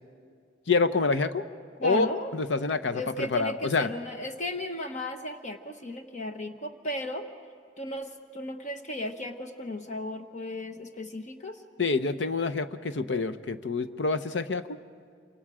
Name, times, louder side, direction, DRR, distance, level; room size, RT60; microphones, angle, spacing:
voice 1, 0.7-1.4 1.8-2.1 2.3-3.9 11.8-14.8, left 4 dB, 65° left, 11 dB, 0.8 m, -27 dB
voice 2, 1.8-2.3 2.9-7.2 7.8-11.6, left 1 dB, 40° left, 6 dB, 1.1 m, -35 dB
28.0 x 26.0 x 5.0 m, 2.1 s
head